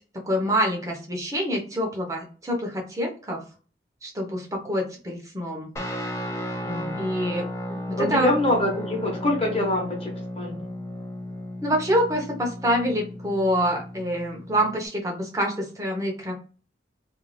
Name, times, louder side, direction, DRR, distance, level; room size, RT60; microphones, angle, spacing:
voice 1, 0.2-3.4 4.0-5.7 6.9-7.5 7.9-8.3 11.6-16.3, equal, 15° right, 0 dB, 0.7 m, -26 dB
Guitar, 5.8-14.9, equal, 15° left, 0.5 m, -34 dB
voice 2, 6.6-7.1 7.9-10.6, left 1 dB, 30° left, -1 dB, 1.0 m, -25 dB
2.5 x 2.4 x 3.1 m, 0.38 s
head